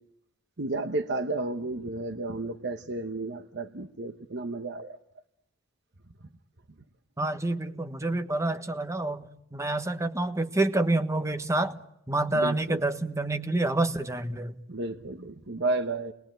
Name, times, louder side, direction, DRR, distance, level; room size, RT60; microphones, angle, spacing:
voice 1, 0.6-5.0 12.3-12.8 14.7-16.1, right 2 dB, 55° right, 9 dB, 1.1 m, -32 dB
voice 2, 7.2-11.8 12.1-14.5, right 2 dB, 15° right, 9 dB, 1.3 m, -28 dB
30.0 x 21.5 x 9.1 m, 0.82 s
head